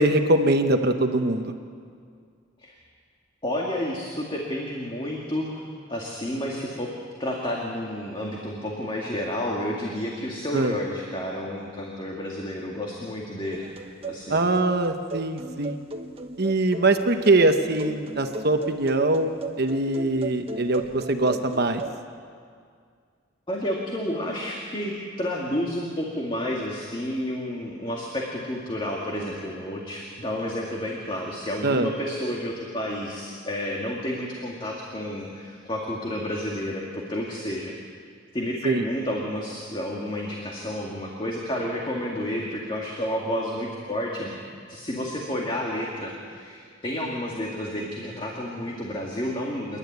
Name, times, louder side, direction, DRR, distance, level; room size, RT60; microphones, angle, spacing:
voice 1, 0.0-1.5 10.5-10.7 14.3-15.8 16.4-19.3 19.6-21.8 31.6-31.9 38.6-38.8, right 2 dB, 55° right, 6 dB, 1.1 m, -22 dB
voice 2, 3.4-5.6 5.9-6.9 7.2-13.6 14.0-14.4 23.5-37.7 38.3-44.3 44.7-49.8, left 1 dB, 25° left, -2 dB, 2.2 m, -30 dB
sound 1, 13.5-21.9, right 2 dB, 30° right, 1.3 m, -37 dB
28.5 x 12.0 x 9.4 m, 2.2 s
head